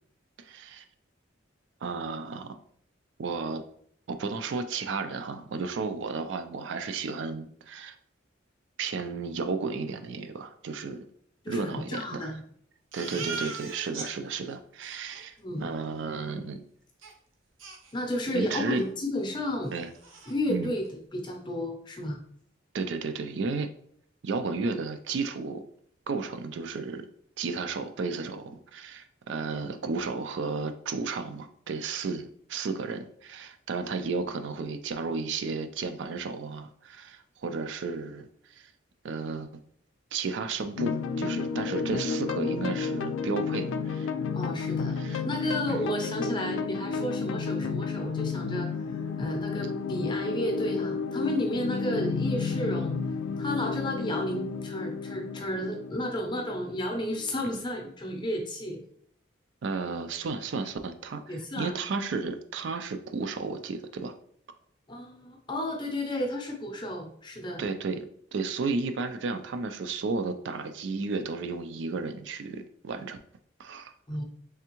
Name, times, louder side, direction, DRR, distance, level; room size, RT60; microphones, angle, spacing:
voice 1, 0.4-0.8 1.8-2.5 3.2-3.6 4.1-8.0 8.8-11.0 11.5-12.4 12.9-16.6 18.3-18.8 19.7-19.9 20.5-20.7 22.7-23.7 24.2-25.6 26.1-27.1 27.4-38.7 39.0-39.5 40.1-44.1 45.0-45.2 45.7-45.9 59.6-64.1 67.6-73.2 73.6-73.9, right 4 dB, 70° right, 8 dB, 0.4 m, -33 dB
voice 2, 11.4-12.4 13.1-13.4 15.4-15.7 17.9-19.7 20.3-20.8 21.1-22.2 44.3-52.9 53.4-58.8 61.3-61.7 64.9-67.6 74.1-74.2, left 1 dB, 25° left, 2 dB, 0.6 m, -32 dB
Crying sobbing, 12.9-14.1 14.5-14.6 14.8-15.2 17.0-17.1 17.6-18.4 18.7-18.9 19.3-19.4 19.7-20.4, right 4 dB, 90° right, 0.8 m, -40 dB
sound 1, 40.8-57.7, left 5 dB, 85° left, 0.3 m, -32 dB
3.5 x 3.3 x 3.0 m, 0.64 s
head